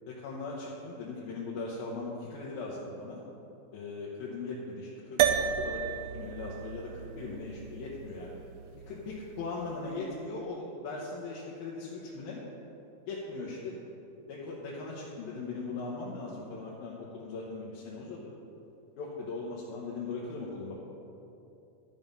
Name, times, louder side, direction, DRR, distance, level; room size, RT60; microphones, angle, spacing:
voice 1, 0.1-3.2 3.7-5.2 5.4-5.8 6.1-8.4 8.9-12.4 13.1-13.7 14.3-18.3 19.0-20.7, left 3 dB, 80° left, -5 dB, 3.0 m, -39 dB
sound 1, 5.2-9.8, right 9 dB, 80° right, 1.9 m, -33 dB
12.5 x 7.3 x 5.4 m, 2.8 s
omnidirectional pair, 4.1 m